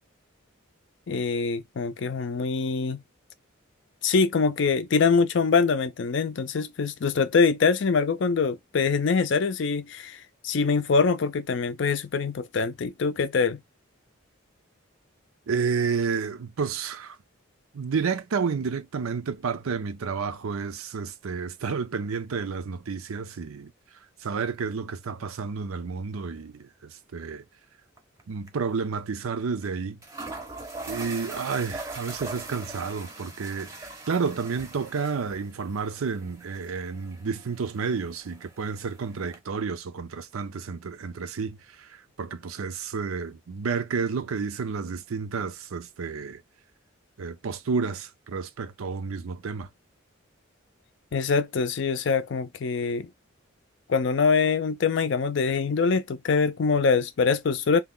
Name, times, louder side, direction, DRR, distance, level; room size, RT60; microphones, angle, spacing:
voice 1, 1.1-3.0 4.0-13.6 51.1-53.1 53.9-57.8, left 5 dB, 60° left, 0.4 m, -24 dB
voice 2, 15.5-17.2 17.7-23.7 24.2-27.4 28.3-30.0 30.9-41.9 42.2-46.4 47.2-49.7, right 5 dB, 85° right, 0.5 m, -30 dB
sound 1, 28.0-28.2 28.5-28.6 29.6-29.7 30.0-39.4, right 2 dB, 15° right, 0.6 m, -41 dB
2.9 x 2.2 x 3.6 m
head